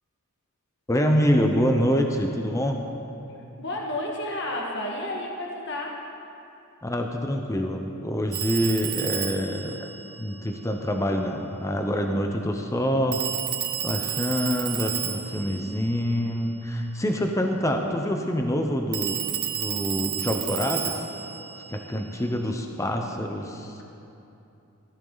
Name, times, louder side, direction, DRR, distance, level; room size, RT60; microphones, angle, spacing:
voice 1, 0.9-2.8 6.8-9.9 10.2-13.2 13.8-19.2 19.5-21.0 21.7-23.8, equal, 15° left, 3 dB, 0.7 m, -26 dB
voice 2, 3.6-6.0, left 1 dB, 55° left, -1 dB, 1.6 m, -31 dB
Telephone, 8.3-11.0 13.1-16.8 18.9-22.4, right 10 dB, 45° right, 0.8 m, -32 dB
16.0 x 13.5 x 4.0 m, 2.8 s
head